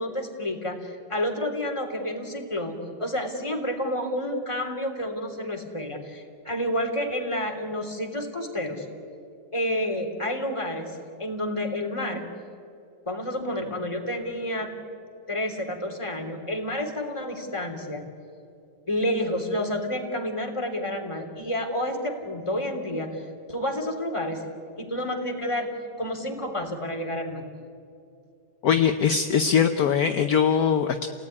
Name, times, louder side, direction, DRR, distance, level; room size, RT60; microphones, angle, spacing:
voice 1, 0.0-8.9 9.5-12.3 13.1-14.7 15.3-18.0 18.9-23.2 23.5-24.5 24.8-25.7 26.0-27.4, left 1 dB, 15° left, 3 dB, 3.1 m, -29 dB
voice 2, 28.6-31.1, left 7 dB, 60° left, 7 dB, 1.3 m, -21 dB
29.5 x 18.0 x 9.8 m, 2.5 s
omnidirectional pair, 1.9 m